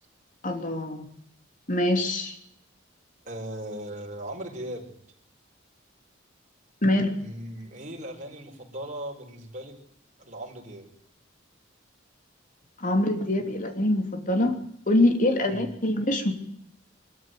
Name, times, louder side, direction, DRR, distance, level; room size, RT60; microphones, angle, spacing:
voice 1, 0.4-1.0 1.7-2.3 6.8-7.1 12.8-14.6 14.9-16.3, left 1 dB, 45° left, 5 dB, 3.1 m, -24 dB
voice 2, 3.2-4.9 7.1-9.8 10.2-10.9 15.5-15.7, right 1 dB, 40° right, 0 dB, 4.9 m, -38 dB
22.5 x 14.0 x 9.3 m, 0.74 s
head